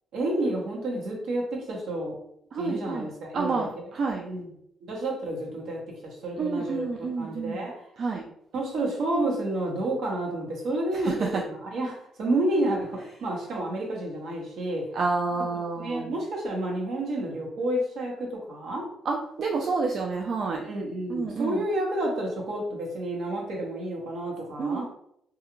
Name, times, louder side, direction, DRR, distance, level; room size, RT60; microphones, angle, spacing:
voice 1, 0.1-2.2 2.6-3.7 4.3-4.5 4.8-6.9 7.2-7.9 8.5-14.9 15.8-18.9 20.6-24.9, right 1 dB, 75° right, -2 dB, 0.9 m, -30 dB
voice 2, 2.5-4.3 6.4-7.7 8.0-8.2 10.9-11.4 14.9-16.1 19.1-20.6 21.1-21.6 24.6-24.9, right 4 dB, 60° right, 0 dB, 0.3 m, -29 dB
2.4 x 2.3 x 3.0 m, 0.74 s
cardioid pair, 90°, 0 cm